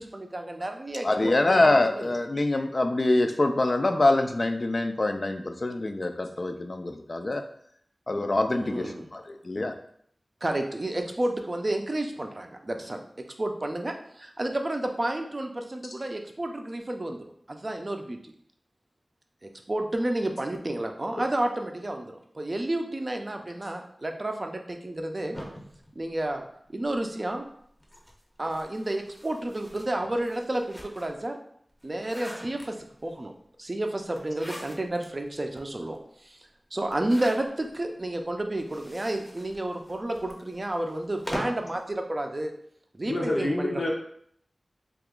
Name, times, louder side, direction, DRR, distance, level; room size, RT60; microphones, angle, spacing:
voice 1, 0.0-1.6 1.9-2.0 8.5-9.1 10.4-13.0 13.4-17.2 17.5-18.3 19.4-25.4 26.0-27.4 28.4-31.4 31.8-32.8 33.0-33.3 33.6-36.4 36.7-42.5 42.9-43.9, right 1 dB, 40° right, 4 dB, 0.4 m, -31 dB
voice 2, 1.0-7.4 8.1-9.7, left 2 dB, 45° left, 6 dB, 0.3 m, -25 dB
sound 1, 25.3-26.9 27.8-31.2 31.7-33.1 34.1-35.1 35.6-35.7 35.9-36.0 36.9-37.8 38.5-41.7, equal, 10° left, 0.6 m, -42 dB
voice 3, 43.0-43.9, left 1 dB, 80° left, -1 dB, 0.7 m, -27 dB
2.9 x 2.4 x 3.6 m, 0.66 s
wide cardioid pair, 80°, 0 cm